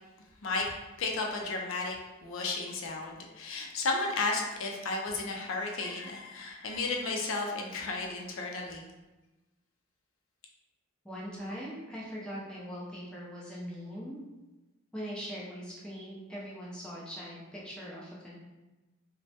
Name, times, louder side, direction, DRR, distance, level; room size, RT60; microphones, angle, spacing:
voice 1, 1.0-2.0 2.2-8.9, left 3 dB, 70° left, 0 dB, 0.4 m, -33 dB
voice 2, 11.0-14.2 14.9-18.4, equal, 5° left, -6 dB, 0.5 m, -41 dB
3.2 x 2.1 x 2.7 m, 1.1 s
head